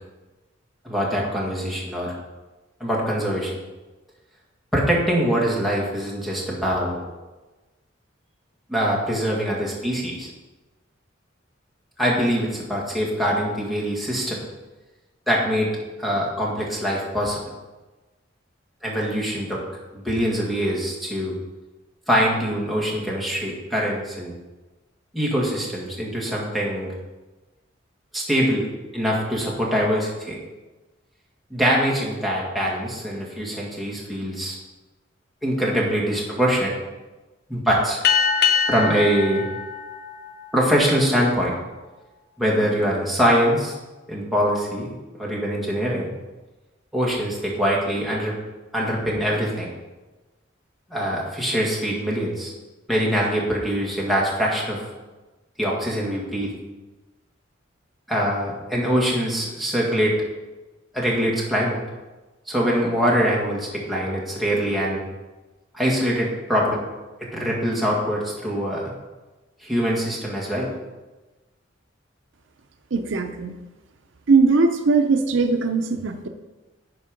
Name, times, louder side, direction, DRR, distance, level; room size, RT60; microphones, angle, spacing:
voice 1, 0.8-2.1 2.8-3.5 4.7-7.0 8.7-10.3 12.0-14.4 15.3-15.7 16.0-17.4 18.8-19.6 19.9-21.3 22.1-24.3 25.1-26.9 28.1-28.7 28.9-30.4 31.5-34.6 35.4-36.7 37.5-38.0 38.7-39.4 40.5-41.6 42.4-43.8 44.1-44.9 45.2-46.1 46.9-48.3 48.7-49.7 50.9-52.5 52.9-54.8 55.6-56.5 58.1-60.2 60.9-61.8 62.5-65.0 65.7-66.8 67.3-68.9 69.6-70.8, equal, ahead, -5 dB, 2.0 m, -23 dB
sound 1, 38.0-41.0, left 7 dB, 55° left, 0.8 m, -23 dB
voice 2, 72.9-73.5 74.3-76.3, right 4 dB, 75° right, 6 dB, 0.6 m, -20 dB
11.0 x 4.6 x 5.1 m, 1.2 s
head